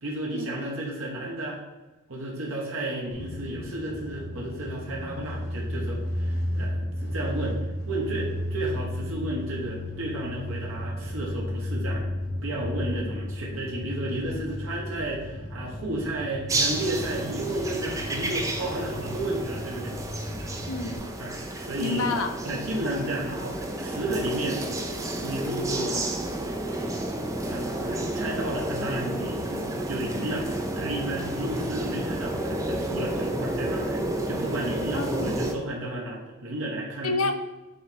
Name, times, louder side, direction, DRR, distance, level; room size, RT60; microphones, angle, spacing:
voice 1, 0.0-1.6 2.1-19.9 21.2-22.1 22.4-24.6 25.2-26.1 27.5-30.5 30.8-34.0 34.3-37.1, right 1 dB, 70° right, -3 dB, 1.1 m, -32 dB
sound 1, 3.1-21.0, left 1 dB, 55° left, 1.4 m, -34 dB
sound 2, 16.5-35.5, right 1 dB, 15° right, 0.5 m, -31 dB
voice 2, 20.7-21.1 21.8-22.3 34.9-35.4 37.0-37.3, left 3 dB, 75° left, 6 dB, 0.7 m, -28 dB
6.7 x 3.4 x 4.2 m, 1.1 s
head